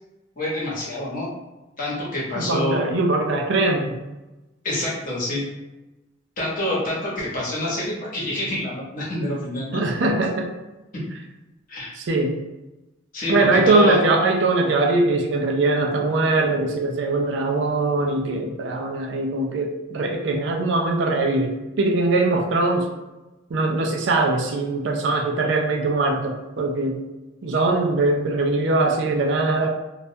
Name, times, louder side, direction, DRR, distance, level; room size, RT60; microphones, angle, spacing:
voice 1, 0.4-1.3 1.8-2.8 4.6-5.4 6.4-9.8 11.7-11.9 13.1-14.0, left 1 dB, 45° left, -6 dB, 0.9 m, -26 dB
voice 2, 2.3-4.0 9.7-10.5 11.9-12.4 13.3-22.9 23.5-27.0 27.4-29.7, right 2 dB, 65° right, 2 dB, 0.4 m, -21 dB
2.3 x 2.1 x 2.7 m, 1.1 s
head